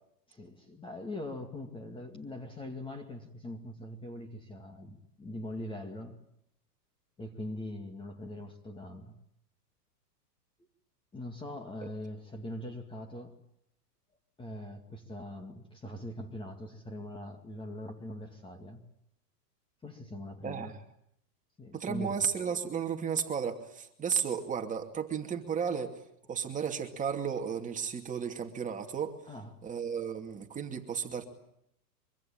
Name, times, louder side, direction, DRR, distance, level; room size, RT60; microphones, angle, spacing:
voice 1, 0.3-6.2 7.2-9.1 11.1-13.4 14.4-18.8 19.8-20.7 21.6-22.2 29.3-29.6, left 1 dB, 10° left, 2.2 m, -42 dB
voice 2, 21.7-26.0 26.3-29.2 29.6-31.3, right 7 dB, 15° right, 2.6 m, -33 dB
24.5 x 24.0 x 8.9 m
hypercardioid pair, 145°, 49 cm